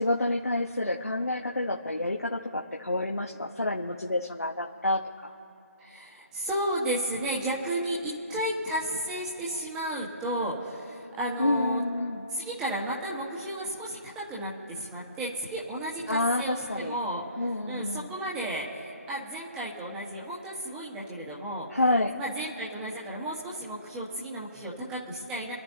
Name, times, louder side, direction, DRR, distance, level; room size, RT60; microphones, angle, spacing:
voice 1, 0.0-5.3 11.4-12.3 16.1-17.0 17.4-18.1 21.7-22.1, left 2 dB, 70° left, -2 dB, 1.4 m, -28 dB
voice 2, 5.8-11.8 12.3-17.2 17.7-18.7 19.1-21.7 22.1-25.5, right 1 dB, 5° right, -6 dB, 1.6 m, -33 dB
26.5 x 12.5 x 2.8 m, 3.0 s
figure-of-eight pair, 160°, 8 cm